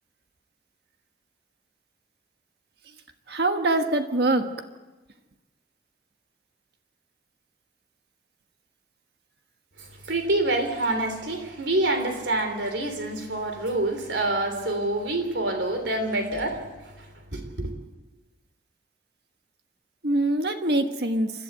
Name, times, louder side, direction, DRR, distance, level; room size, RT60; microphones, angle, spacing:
voice 1, 3.3-4.5 20.0-21.3, right 2 dB, 65° right, 6 dB, 1.4 m, -23 dB
voice 2, 10.0-16.7 17.0-17.1 17.3-17.7, right 2 dB, 85° right, 6 dB, 3.3 m, -26 dB
29.0 x 12.0 x 8.0 m, 1.2 s
head